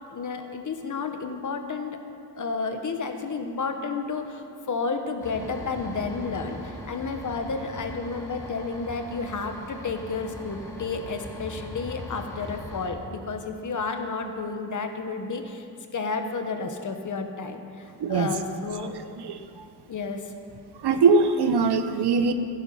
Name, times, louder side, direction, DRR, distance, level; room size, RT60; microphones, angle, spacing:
voice 1, 0.1-2.0 2.4-15.7 15.9-18.9 19.9-20.3 21.0-21.1, left 4 dB, 50° left, 6 dB, 1.2 m, -31 dB
sound 1, 5.2-12.9, left 1 dB, 10° left, 2.2 m, -40 dB
voice 2, 18.0-18.3 19.2-19.4 20.8-22.3, right 4 dB, 75° right, 9 dB, 0.9 m, -21 dB
16.0 x 10.5 x 5.6 m, 2.6 s
wide cardioid pair, 160°, 40 cm